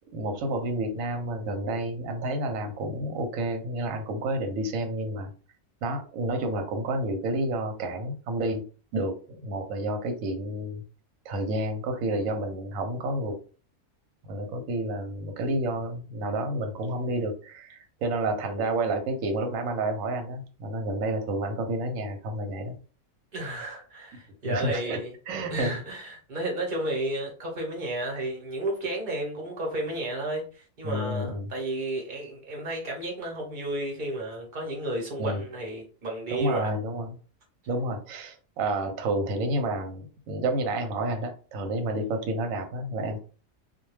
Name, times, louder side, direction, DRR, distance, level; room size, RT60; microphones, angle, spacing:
voice 1, 0.1-5.3 5.8-8.6 8.9-10.8 11.2-13.4 14.2-22.7 24.1-24.2 24.4-25.0 25.3-25.8 30.8-31.5 35.2-35.4 36.3-37.1 37.7-43.2, right 1 dB, 85° right, 1.0 m, -30 dB
voice 2, 23.3-25.1 25.5-36.7, right 1 dB, 40° right, 0.9 m, -32 dB
2.3 x 2.2 x 3.1 m
omnidirectional pair, 1.4 m